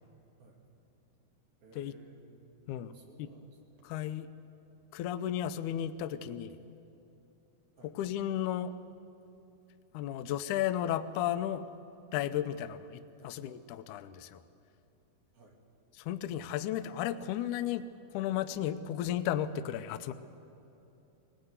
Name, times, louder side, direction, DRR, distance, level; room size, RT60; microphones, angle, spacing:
voice 1, 1.6-2.4 2.8-3.9 6.0-6.2 7.8-8.0 13.2-13.4 15.3-15.6, right 2 dB, 80° right, 0 dB, 4.3 m, -58 dB
voice 2, 2.7-3.3 3.9-4.3 4.9-6.6 8.0-8.8 9.9-11.7 12.1-14.4 16.0-17.9 18.1-20.1, left 11 dB, 85° left, 10 dB, 1.8 m, -34 dB
20.0 x 18.5 x 8.1 m, 2.9 s
omnidirectional pair, 4.3 m